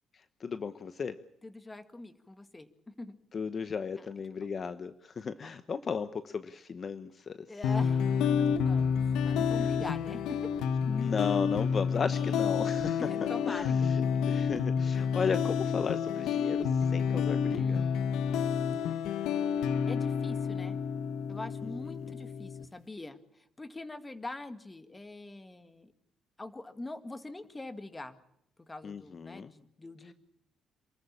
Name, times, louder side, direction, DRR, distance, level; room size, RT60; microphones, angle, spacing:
voice 1, 0.1-1.2 3.3-7.5 10.8-13.1 13.5-17.8 22.0-22.1 28.8-29.5, left 6 dB, 45° left, 12 dB, 1.0 m, -35 dB
voice 2, 1.4-3.2 4.0-4.1 5.4-5.5 7.5-10.8 13.0-14.4 17.5-18.1 19.9-20.8 21.3-25.9 26.4-28.2 28.6-30.1, left 2 dB, 20° left, 10 dB, 2.0 m, -44 dB
sound 1, 7.6-22.6, left 7 dB, 90° left, 1.1 m, -29 dB
27.5 x 14.0 x 8.7 m, 0.78 s
cardioid pair, 90°, 0 cm